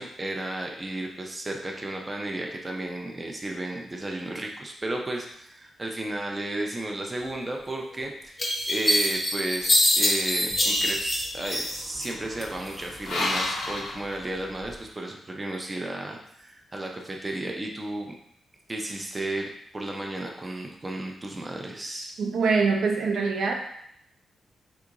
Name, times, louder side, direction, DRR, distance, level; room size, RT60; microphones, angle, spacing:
voice 1, 0.0-18.1 18.7-19.5 19.7-22.1, right 1 dB, 20° right, 1 dB, 0.4 m, -33 dB
sound 1, 7.7-7.8 8.4-12.1 12.4-13.2, left 1 dB, 30° left, 0.6 m, -24 dB
sound 2, 10.5-14.8, left 2 dB, 75° left, 0.6 m, -34 dB
voice 2, 22.2-23.5, right 4 dB, 75° right, 1 dB, 0.5 m, -24 dB
3.6 x 2.8 x 2.5 m, 0.71 s
wide cardioid pair, 125°, 0 cm